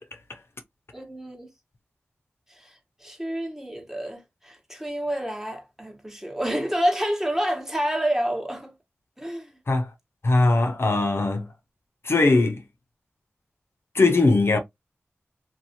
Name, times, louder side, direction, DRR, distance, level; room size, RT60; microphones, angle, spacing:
voice 1, 0.9-1.5 2.5-2.7 3.0-8.7 9.2-9.5, equal, 10° right, 1.1 m, -28 dB
voice 2, 10.2-11.5 12.0-12.6 13.9-14.6, left 2 dB, 60° left, 0.6 m, -20 dB
2.6 x 2.1 x 2.7 m
cardioid pair, 40°, 5 cm